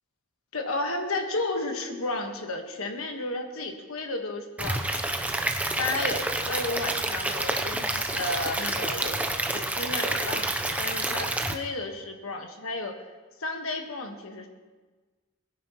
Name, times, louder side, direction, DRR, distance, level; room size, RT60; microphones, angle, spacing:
voice 1, 0.5-5.0 5.8-9.2 9.5-13.0 13.4-14.5, left 2 dB, 80° left, 4 dB, 1.4 m, -32 dB
Stream / Liquid, 4.6-11.5, right 2 dB, 5° right, 0.5 m, -29 dB
20.5 x 10.5 x 3.0 m, 1.3 s
head